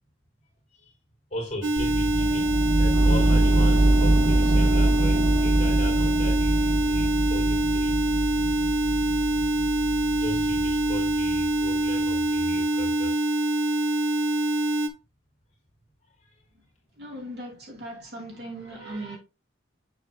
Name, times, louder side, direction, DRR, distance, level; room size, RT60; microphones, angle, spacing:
voice 1, 1.3-7.9 10.2-13.2 16.2-16.4 18.7-19.2, left 1 dB, 35° left, 2.7 m, -38 dB
sound 1, 1.6-14.9, right 1 dB, 70° right, 0.9 m, -25 dB
sound 2, 1.8-11.6, right 2 dB, 30° right, 1.1 m, -24 dB
sound 3, 2.9-9.3, right 1 dB, 90° right, 1.5 m, -36 dB
voice 2, 17.0-19.2, right 1 dB, 55° right, 3.0 m, -38 dB
7.6 x 6.7 x 2.3 m
head